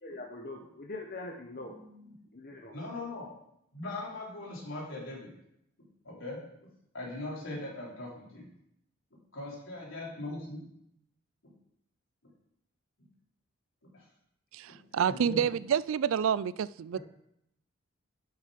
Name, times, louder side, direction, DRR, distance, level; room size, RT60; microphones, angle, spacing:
voice 1, 0.0-1.7 2.3-2.8, left 2 dB, 45° left, 1.0 m, -42 dB
voice 2, 1.6-2.1 2.7-3.3 3.7-5.3 6.0-6.4 6.9-8.5 9.3-10.6 13.9-14.0 15.1-15.5 16.9-17.0, left 2 dB, 80° left, 3.7 m, -40 dB
voice 3, 14.5-17.0, right 8 dB, 80° right, 0.3 m, -28 dB
11.0 x 6.6 x 5.1 m
head